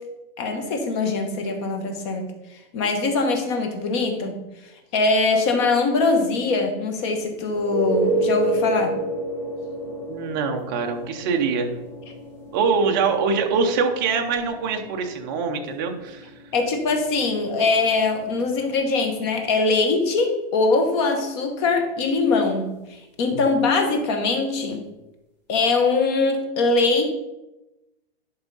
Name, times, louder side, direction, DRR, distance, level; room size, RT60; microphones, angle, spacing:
voice 1, 0.4-2.3 2.7-4.4 4.9-9.0 16.5-24.8 25.5-27.0, left 3 dB, 25° left, 4 dB, 1.1 m, -22 dB
sound 1, 7.5-19.0 23.3-23.4, right 1 dB, 5° left, 1.3 m, -30 dB
voice 2, 10.1-11.7 12.5-16.3, right 5 dB, 20° right, 4 dB, 0.6 m, -24 dB
10.5 x 3.6 x 5.4 m, 0.98 s
hypercardioid pair, 170°, 31 cm